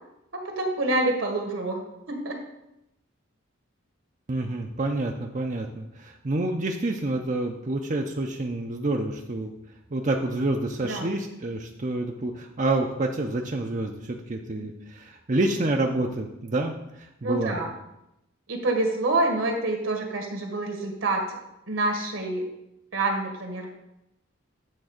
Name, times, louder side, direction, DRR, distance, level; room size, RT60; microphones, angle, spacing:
voice 1, 0.3-1.8 2.1-2.4 10.8-11.2 17.2-17.7 18.5-21.2 21.7-22.5 22.9-23.7, right 2 dB, 80° right, 2 dB, 1.6 m, -27 dB
voice 2, 4.3-9.5 9.9-17.6, right 2 dB, 40° right, 2 dB, 0.6 m, -28 dB
8.6 x 3.5 x 6.5 m, 0.87 s
head